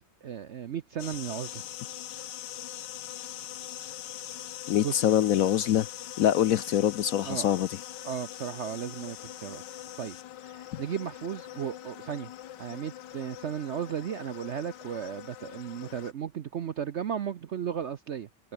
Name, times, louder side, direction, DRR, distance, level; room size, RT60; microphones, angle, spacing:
voice 1, 0.2-1.6 4.8-5.1 7.2-7.5 8.0-9.6 10.0-10.2 10.4-12.3 12.6-18.5, right 8 dB, 60° right, 0.7 m, -35 dB
sound 1, 1.0-16.1, left 12 dB, 85° left, 1.5 m, -42 dB
voice 2, 4.7-5.9 6.2-7.7, left 11 dB, 65° left, 0.9 m, -24 dB
omnidirectional pair, 1.9 m